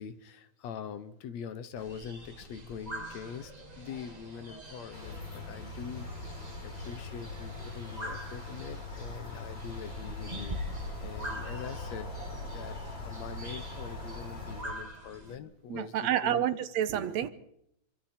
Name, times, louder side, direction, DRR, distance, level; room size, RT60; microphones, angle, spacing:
voice 1, 0.0-3.5 3.8-6.1 6.6-10.6 11.0-16.5, left 7 dB, 70° left, 2.2 m, -43 dB
sound 1, 1.8-15.3, equal, 15° right, 2.0 m, -44 dB
sound 2, 4.9-14.6, left 3 dB, 40° left, 5.1 m, -41 dB
voice 2, 15.7-17.3, right 10 dB, 70° right, 2.1 m, -29 dB
27.0 x 24.5 x 4.4 m
omnidirectional pair, 3.3 m